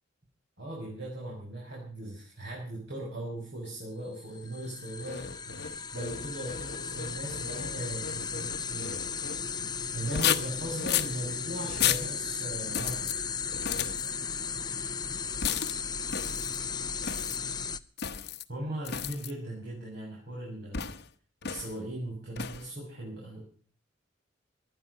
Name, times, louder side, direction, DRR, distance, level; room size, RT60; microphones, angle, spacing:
voice 1, 0.6-9.0 9.9-13.2 18.5-20.9 21.4-23.4, right 1 dB, 65° right, -4 dB, 6.7 m, -39 dB
sound 1, 4.2-17.8, left 6 dB, 20° left, 0.6 m, -36 dB
sound 2, 5.0-9.4 10.0-11.2 11.7-12.1 12.7-13.2 13.5-14.1 15.4-15.8 16.1-16.6 17.0-17.4 18.0-18.4 18.8-19.3 20.7-21.1 21.4-21.8 22.4-22.7, left 9 dB, 60° left, 1.0 m, -33 dB
19.0 x 12.0 x 5.6 m, 0.44 s
head